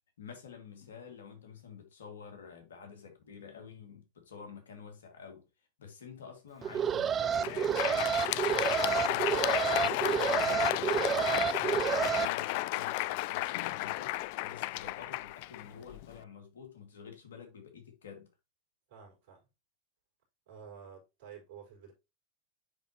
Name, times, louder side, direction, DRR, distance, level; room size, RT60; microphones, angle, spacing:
voice 1, 0.2-5.4 5.8-8.1 8.4-18.3, left 6 dB, 85° left, 2.1 m, -49 dB
Alarm, 6.6-12.3, right 8 dB, 30° right, 0.5 m, -30 dB
Crowd, 7.2-16.2, left 19 dB, 60° left, 0.3 m, -33 dB
voice 2, 18.9-19.5 20.5-21.9, right 7 dB, 65° right, 4.3 m, -51 dB
9.5 x 4.1 x 2.9 m
hypercardioid pair, 95°, 0 cm